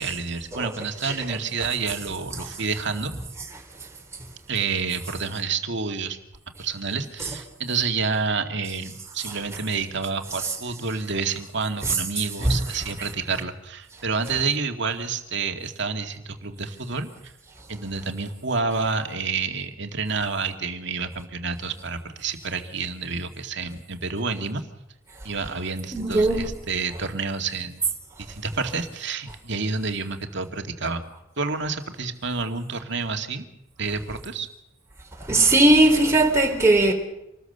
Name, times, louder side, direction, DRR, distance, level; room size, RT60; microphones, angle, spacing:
voice 1, 0.0-3.1 4.5-6.2 6.6-17.1 17.7-24.6 25.2-27.8 28.2-31.0 31.4-33.4 33.8-34.5, right 4 dB, 60° right, 2.3 m, -29 dB
voice 2, 25.9-26.6 35.2-36.9, right 2 dB, 15° right, 3.6 m, -19 dB
27.0 x 20.0 x 6.8 m
head